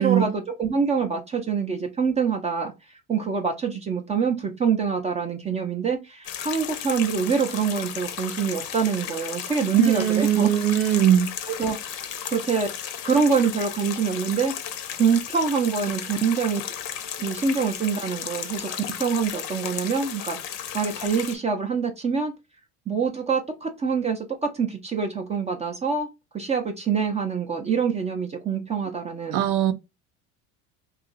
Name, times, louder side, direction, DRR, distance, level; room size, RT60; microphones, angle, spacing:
voice 1, 0.0-2.7 3.1-10.5 11.6-12.7 13.0-14.5 15.0-16.6 17.2-18.7 19.0-20.4 20.7-22.3 22.9-26.1 26.3-29.4, right 6 dB, 20° right, 0.5 m, -25 dB
sound 1, 6.2-21.3, left 9 dB, 65° left, 0.7 m, -34 dB
voice 2, 9.8-11.3 29.3-29.7, right 10 dB, 90° right, 0.6 m, -20 dB
2.9 x 2.4 x 3.9 m
supercardioid pair, 125°, 35 cm